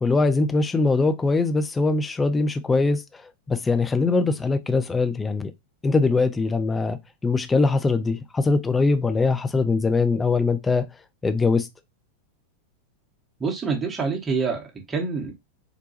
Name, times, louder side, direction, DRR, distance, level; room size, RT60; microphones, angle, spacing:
voice 1, 0.0-3.0 3.5-5.5 5.8-7.0 7.2-10.9 11.2-11.7, left 3 dB, 15° left, 0.4 m, -22 dB
voice 2, 13.4-15.3, right 5 dB, 15° right, 0.9 m, -26 dB
3.8 x 2.2 x 2.8 m
figure-of-eight pair, 90°, 0 cm